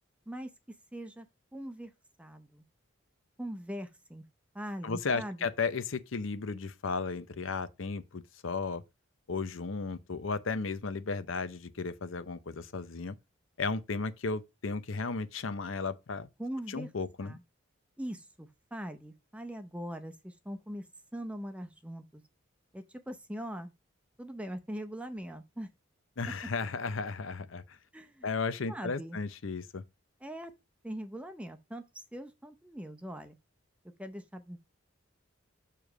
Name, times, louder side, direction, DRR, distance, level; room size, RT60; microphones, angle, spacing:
voice 1, 0.9-1.3 1.5-1.9 2.2-2.6 3.4-4.2 4.5-5.4 16.4-16.9 17.2-17.4 18.0-20.9 21.1-22.2 22.7-23.7 24.2-25.7 27.9-28.3 28.7-29.2 30.2-30.5 30.8-31.8 32.1-33.3 34.0-34.6, equal, 5° right, 0.6 m, -41 dB
voice 2, 4.8-8.8 9.3-13.1 13.6-16.3 16.7-17.4 26.2-27.8 28.2-29.8, left 4 dB, 70° left, 0.7 m, -34 dB
6.9 x 3.3 x 6.0 m
head